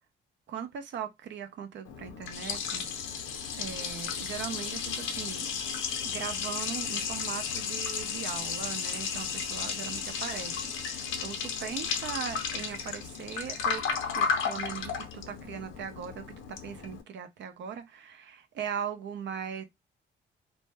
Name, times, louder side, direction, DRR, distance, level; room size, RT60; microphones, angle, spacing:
voice 1, 0.5-2.9 3.6-5.5 6.0-13.8 14.2-19.6, right 8 dB, 65° right, 0.7 m, -39 dB
Liquid, 1.9-17.0, left 6 dB, 85° left, 0.6 m, -34 dB
2.6 x 2.1 x 3.3 m
cardioid pair, 90°, 20 cm